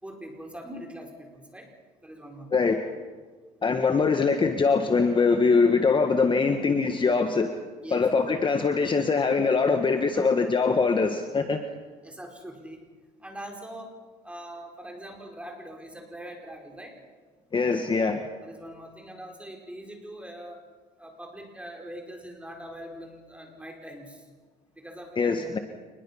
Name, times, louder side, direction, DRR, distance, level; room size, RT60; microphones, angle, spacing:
voice 1, 0.0-1.7 2.0-2.7 7.8-8.1 10.1-10.3 12.0-12.8 13.2-13.9 14.2-17.0 18.4-20.6 21.0-24.3 24.7-25.6, right 1 dB, 5° right, 2 dB, 4.7 m, -42 dB
voice 2, 2.5-2.8 3.6-7.6 7.9-11.6 17.5-18.2 25.2-25.6, left 4 dB, 30° left, 6 dB, 1.5 m, -23 dB
27.5 x 21.0 x 5.7 m, 1.4 s
cardioid pair, 110°, 17 cm